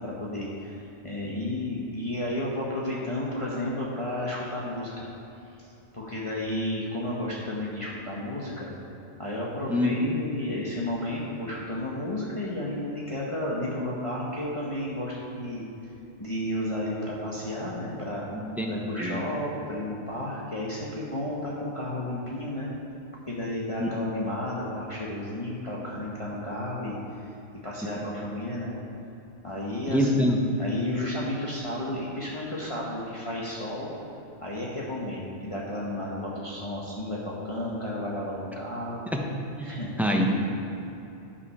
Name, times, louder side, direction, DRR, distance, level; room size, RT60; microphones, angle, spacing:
voice 1, 0.0-5.1 5.6-5.7 5.9-8.7 9.2-15.6 16.2-18.3 18.7-22.7 23.3-27.3 27.6-28.7 29.4-33.9 34.4-39.0 39.6-39.9, left 1 dB, 30° left, -6 dB, 1.2 m, -32 dB
voice 2, 9.7-10.1 18.6-18.7 19.0-19.2 23.8-23.9 29.9-30.4 39.5-39.7 40.0-40.4, equal, ahead, 0 dB, 0.9 m, -24 dB
11.5 x 5.6 x 5.6 m, 2.9 s
omnidirectional pair, 1.1 m